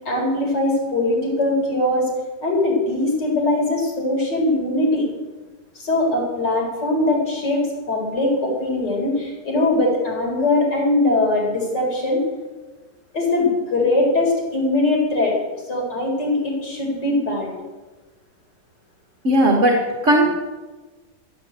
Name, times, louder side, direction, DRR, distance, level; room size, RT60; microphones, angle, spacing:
voice 1, 0.0-2.1 2.4-5.1 5.7-12.2 13.1-15.4 15.7-17.5, left 2 dB, 75° left, -1 dB, 4.9 m, -21 dB
voice 2, 19.2-20.3, right 1 dB, 45° right, 1 dB, 1.9 m, -17 dB
13.5 x 9.7 x 8.3 m, 1.2 s
omnidirectional pair, 1.9 m